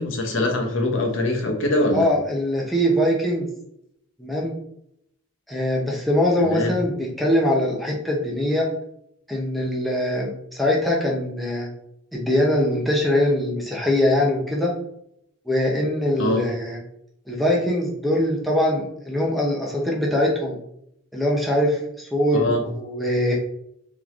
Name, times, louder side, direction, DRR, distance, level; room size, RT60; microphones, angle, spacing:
voice 1, 0.0-2.1 6.4-6.7 16.2-16.4 22.3-22.6, left 1 dB, 75° left, 1 dB, 1.0 m, -23 dB
voice 2, 1.9-3.5 4.2-4.5 5.5-8.7 9.3-11.7 12.1-14.7 15.5-16.8 17.3-20.6 21.1-23.4, left 1 dB, ahead, -3 dB, 0.8 m, -22 dB
3.8 x 3.1 x 3.7 m, 0.74 s
head